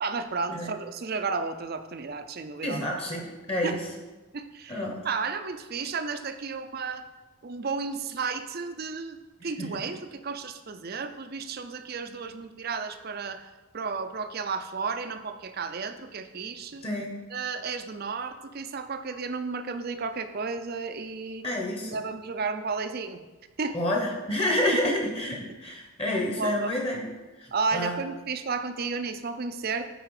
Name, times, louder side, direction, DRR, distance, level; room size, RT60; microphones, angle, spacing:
voice 1, 0.0-2.9 3.6-3.8 4.3-7.1 7.4-16.8 17.3-21.4 21.8-23.2 23.6-23.8 24.7-24.8 26.4-26.7 27.5-29.8, right 4 dB, 45° right, 9 dB, 0.5 m, -33 dB
voice 2, 2.6-3.8 4.7-5.0 9.6-9.8 16.8-17.1 21.4-22.0 23.7-27.1 27.4-28.0, left 1 dB, 25° left, 0 dB, 1.1 m, -29 dB
9.1 x 4.6 x 4.9 m, 1.2 s
head